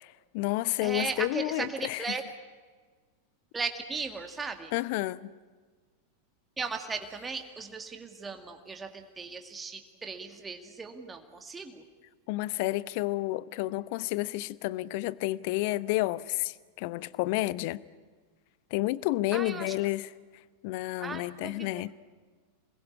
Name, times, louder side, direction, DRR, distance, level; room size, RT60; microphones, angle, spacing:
voice 1, 0.0-2.0 4.7-5.3 12.3-17.8 18.7-20.1 20.6-21.9, left 18 dB, 45° left, 0.8 m, -30 dB
voice 2, 0.8-2.2 3.5-4.7 6.6-11.8 19.3-19.8 21.0-21.9, right 4 dB, 15° right, 2.2 m, -37 dB
27.5 x 21.0 x 9.8 m
figure-of-eight pair, 90°, 0 cm